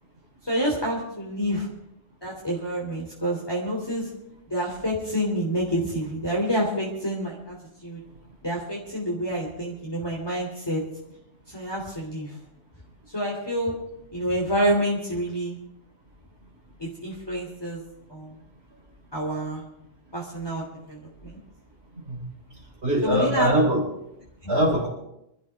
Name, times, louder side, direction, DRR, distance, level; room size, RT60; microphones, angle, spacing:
voice 1, 0.4-1.7 2.2-4.1 4.5-7.6 7.8-8.0 8.4-10.8 11.5-12.4 13.1-13.7 14.1-15.6 16.8-17.8 18.1-18.4 19.1-19.6 20.1-21.4 23.0-23.5 24.4-24.5, equal, 20° left, -4 dB, 2.9 m, -28 dB
voice 2, 22.8-23.8 24.5-24.9, right 1 dB, 50° right, -5 dB, 4.0 m, -22 dB
25.0 x 13.5 x 3.5 m, 0.83 s
omnidirectional pair, 1.4 m